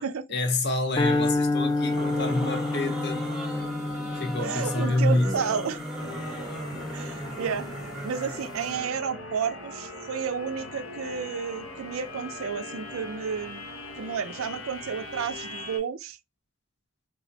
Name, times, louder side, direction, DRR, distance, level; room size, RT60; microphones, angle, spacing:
voice 1, 0.3-3.3 4.1-5.6, left 2 dB, 50° left, 0.7 m, -27 dB
sound 1, 1.0-7.3, left 2 dB, 20° left, 0.4 m, -29 dB
sound 2, 1.7-9.0, equal, ahead, 0.7 m, -37 dB
voice 2, 4.4-5.8 6.9-7.7 8.0-13.7 13.9-16.2, right 6 dB, 75° right, 0.4 m, -31 dB
sound 3, 6.0-15.8, left 2 dB, 85° left, 1.1 m, -40 dB
3.6 x 2.1 x 2.6 m
head